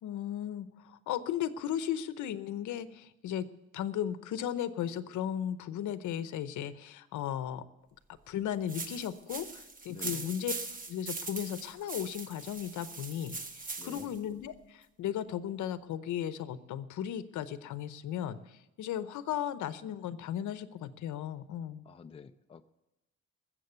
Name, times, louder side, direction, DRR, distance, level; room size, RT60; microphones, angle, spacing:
voice 1, 0.0-3.5 3.7-7.6 8.3-10.5 10.9-21.8, left 10 dB, 75° left, 14 dB, 0.8 m, -36 dB
sound 1, 8.7-14.2, right 3 dB, 30° right, 1.1 m, -41 dB
voice 2, 9.9-10.3 13.8-14.1 21.9-22.6, left 5 dB, 20° left, 8 dB, 0.4 m, -49 dB
21.0 x 7.6 x 6.8 m, 0.96 s
cardioid pair, 145°, 30 cm